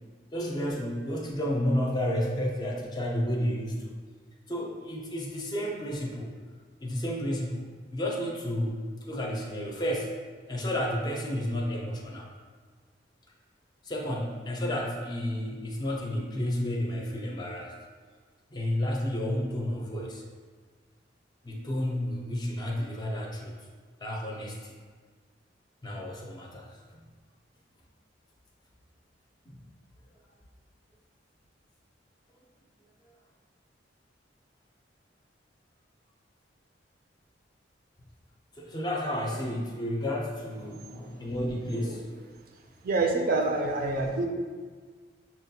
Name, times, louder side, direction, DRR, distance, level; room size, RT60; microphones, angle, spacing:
voice 1, 0.3-3.9 4.5-6.3 6.8-7.6 7.9-10.1 10.5-12.3 13.8-17.7 18.5-20.2 21.4-23.5 24.0-24.7 25.8-26.7 29.5-29.6 38.6-42.1, left 1 dB, 25° left, -1 dB, 0.4 m, -31 dB
voice 2, 42.8-44.3, right 3 dB, 50° right, 2 dB, 0.4 m, -26 dB
5.7 x 2.2 x 2.6 m, 1.5 s
head